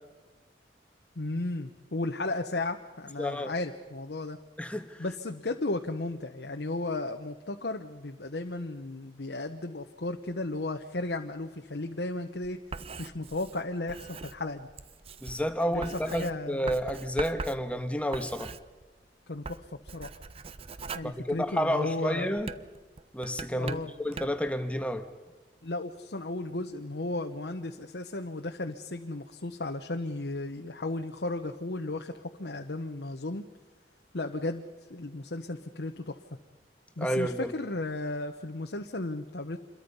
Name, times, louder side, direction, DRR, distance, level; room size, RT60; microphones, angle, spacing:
voice 1, 1.1-4.4 5.0-12.6 13.0-14.7 15.7-16.7 19.3-19.7 19.9-20.2 20.9-22.4 23.5-23.9 25.6-33.4 34.1-34.6 34.9-36.2 37.0-39.6, left 2 dB, 70° left, 4 dB, 1.1 m, -34 dB
voice 2, 3.2-3.5 4.6-5.0 15.2-18.5 21.0-22.5 23.1-25.1 37.0-37.5, equal, 5° left, 7 dB, 1.4 m, -30 dB
Writing, 12.4-19.1 19.4-21.9 22.4-24.5, right 4 dB, 35° right, 0.7 m, -42 dB
27.5 x 22.0 x 5.5 m, 1.2 s
head